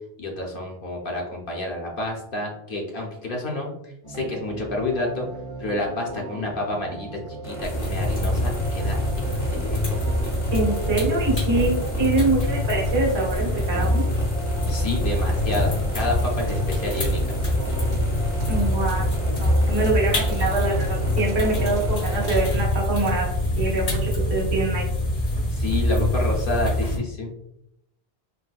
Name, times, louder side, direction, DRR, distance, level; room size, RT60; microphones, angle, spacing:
voice 1, 0.2-5.3 5.6-7.1 7.4-9.0 9.4-9.9 14.7-17.4 25.5-27.3, left 2 dB, 60° left, 0 dB, 0.8 m, -29 dB
sound 1, 4.0-22.5, right 1 dB, 45° right, 1.1 m, -35 dB
sound 2, 7.4-22.5, right 1 dB, 5° right, 0.4 m, -37 dB
sound 3, 7.6-27.0, left 1 dB, 85° left, 1.8 m, -25 dB
voice 2, 10.5-14.0 18.5-24.9, right 2 dB, 80° right, -5 dB, 1.4 m, -25 dB
3.8 x 2.1 x 2.4 m, 0.81 s
omnidirectional pair, 1.1 m